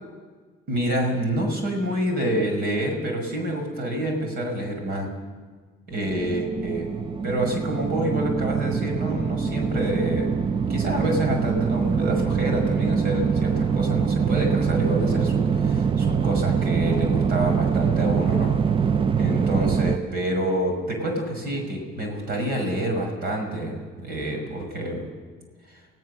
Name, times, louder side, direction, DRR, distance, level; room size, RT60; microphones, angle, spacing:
voice 1, 0.7-5.1 5.9-6.9 7.2-10.4 10.7-18.5 19.2-25.1 25.7-25.8, right 1 dB, 65° right, 3 dB, 5.7 m, -27 dB
sound 1, 5.9-20.0, right 6 dB, 30° right, 0.6 m, -24 dB
25.5 x 17.0 x 6.7 m, 1.5 s
cardioid pair, 110°, 17 cm